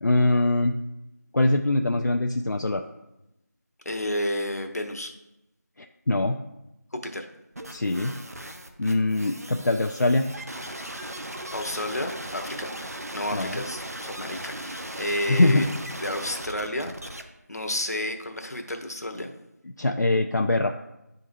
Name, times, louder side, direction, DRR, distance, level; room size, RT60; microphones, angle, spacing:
voice 1, 0.0-0.8 1.3-2.8 5.8-6.4 7.7-8.2 8.8-10.3 13.3-13.6 15.3-15.7 19.8-20.7, left 2 dB, 80° left, 3 dB, 0.5 m, -23 dB
voice 2, 3.8-5.1 6.9-7.3 11.5-12.7 13.1-15.7 16.0-16.9 17.5-19.3, left 1 dB, 60° left, 4 dB, 0.9 m, -31 dB
sound 1, 7.6-17.2, right 1 dB, 60° right, 0.7 m, -38 dB
10.5 x 3.9 x 2.6 m, 0.92 s
figure-of-eight pair, 175°, 9 cm